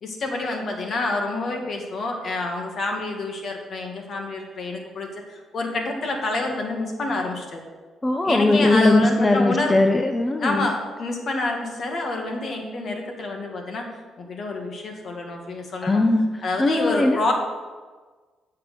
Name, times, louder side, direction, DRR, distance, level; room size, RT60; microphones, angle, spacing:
voice 1, 0.0-7.6 8.2-9.8 10.4-13.9 14.2-16.0 16.4-17.3, left 2 dB, 55° left, 2 dB, 1.9 m, -28 dB
voice 2, 8.0-10.7 15.8-17.3, left 2 dB, 20° left, 5 dB, 0.6 m, -20 dB
8.5 x 6.3 x 6.7 m, 1.4 s
cardioid pair, 90°, 0 cm